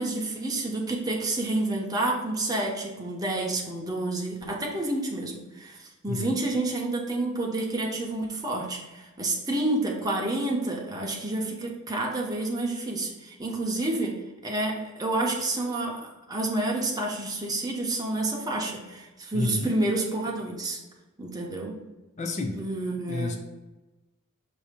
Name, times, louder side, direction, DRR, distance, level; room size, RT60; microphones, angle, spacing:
voice 1, 0.0-14.1 14.4-20.8 21.2-21.8 22.5-23.4, right 2 dB, 15° right, -1 dB, 0.9 m, -29 dB
voice 2, 6.1-6.4 19.3-19.7 22.2-22.6 23.1-23.4, left 2 dB, 35° left, 3 dB, 0.5 m, -30 dB
6.6 x 2.8 x 5.1 m, 1.1 s
head